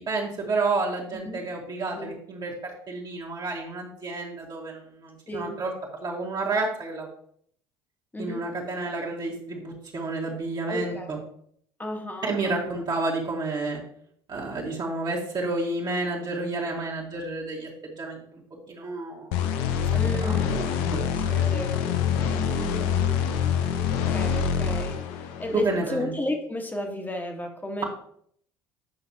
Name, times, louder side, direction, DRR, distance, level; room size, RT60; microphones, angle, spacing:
voice 1, 0.0-5.7 6.0-7.1 8.2-11.2 12.2-13.8 14.3-18.4 18.7-19.6 20.2-21.0 25.6-26.1, right 3 dB, 40° right, -4 dB, 1.8 m, -30 dB
voice 2, 1.1-1.5 1.9-2.1 5.3-5.6 8.1-8.5 10.7-11.3 11.8-12.8 19.9-23.4 23.9-25.0 25.4-27.8, left 1 dB, 15° left, 3 dB, 1.5 m, -34 dB
sound 1, 19.3-25.8, left 7 dB, 70° left, 0.7 m, -25 dB
8.0 x 5.8 x 2.9 m, 0.64 s
hypercardioid pair, 65°, 11 cm